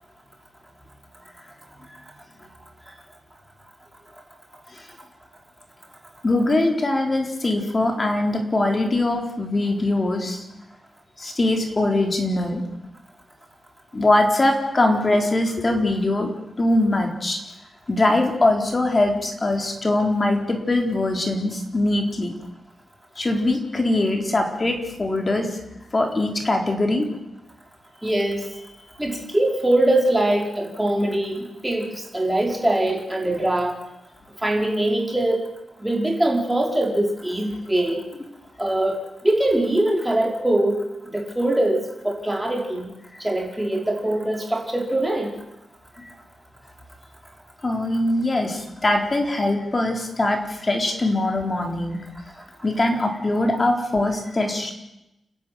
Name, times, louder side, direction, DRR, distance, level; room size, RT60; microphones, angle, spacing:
voice 1, 6.2-10.4 11.2-12.6 13.9-16.3 16.6-17.4 17.9-22.3 23.2-25.6 25.9-27.1 46.0-46.1 47.6-52.0 52.6-54.7, left 2 dB, 30° left, 3 dB, 4.1 m, -22 dB
voice 2, 28.0-28.5 29.0-31.9 32.1-33.7 34.4-35.4 35.8-38.0 38.6-39.0 39.2-40.8 41.1-42.9 43.2-45.3, right 1 dB, 10° right, 1 dB, 5.1 m, -22 dB
29.5 x 11.0 x 9.5 m, 0.90 s
wide cardioid pair, 115°, 0 cm